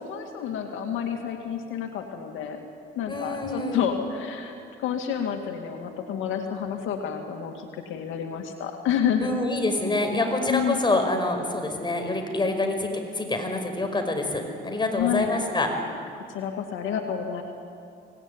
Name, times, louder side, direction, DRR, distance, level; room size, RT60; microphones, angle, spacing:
voice 1, 0.0-2.6 3.0-9.4 10.5-10.8 15.0-15.3 16.3-17.4, left 8 dB, 90° left, 4 dB, 2.2 m, -29 dB
voice 2, 3.1-3.9 9.2-15.7, left 2 dB, 25° left, 4 dB, 5.2 m, -26 dB
24.5 x 19.0 x 9.8 m, 2.5 s
cardioid pair, 90°, 20 cm